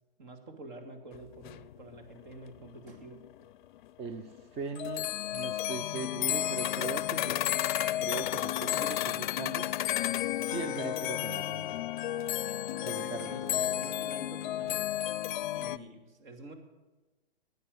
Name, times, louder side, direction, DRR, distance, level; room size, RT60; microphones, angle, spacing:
voice 1, 0.2-3.2 12.4-14.9 15.5-16.5, right 2 dB, 50° right, 5 dB, 2.4 m, -48 dB
sound 1, 1.1-1.2 1.4-3.4 3.7-3.9 4.3-4.4 4.7-15.8, left 13 dB, 55° left, 0.5 m, -32 dB
voice 2, 4.0-7.5 8.0-9.7 10.4-11.9 12.7-13.6, right 5 dB, 20° right, 8 dB, 0.6 m, -40 dB
11.0 x 9.4 x 7.8 m, 1.2 s
hypercardioid pair, 130°, 29 cm